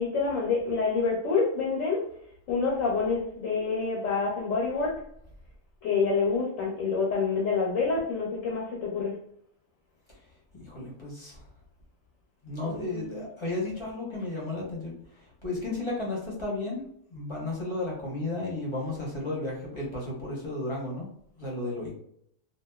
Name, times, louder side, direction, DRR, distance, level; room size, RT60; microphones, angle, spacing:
voice 1, 0.0-2.0 2.5-4.9 5.8-9.1 12.6-13.2, left 4 dB, 75° left, -3 dB, 1.1 m, -27 dB
voice 2, 10.6-11.4 12.4-16.8 17.1-21.1 21.4-21.9, left 2 dB, 25° left, -5 dB, 0.7 m, -33 dB
2.8 x 2.5 x 2.2 m, 0.69 s
omnidirectional pair, 1.4 m